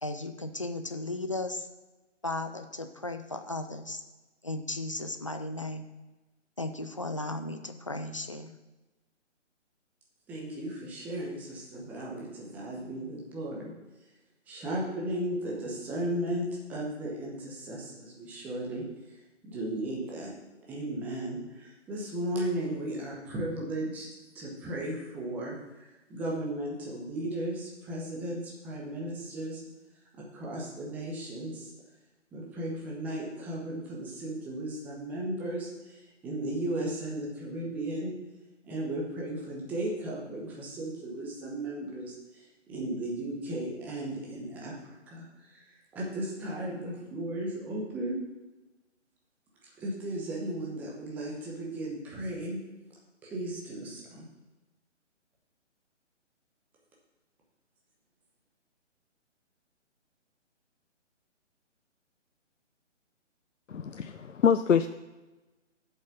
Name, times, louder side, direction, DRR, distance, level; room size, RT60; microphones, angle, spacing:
voice 1, 0.0-1.7 2.2-4.0 4.4-5.9 6.6-8.5, left 2 dB, 25° left, 8 dB, 0.4 m, -35 dB
voice 2, 10.3-13.7 14.5-19.2 19.4-20.3 20.7-24.1 24.3-29.6 30.3-31.7 32.3-38.1 38.6-48.2 49.8-52.6 53.2-54.3, right 1 dB, 5° right, -3 dB, 0.8 m, -35 dB
voice 3, 63.7-64.9, left 7 dB, 85° left, 11 dB, 0.5 m, -25 dB
7.3 x 5.5 x 7.2 m, 1.1 s
figure-of-eight pair, 140°, 37 cm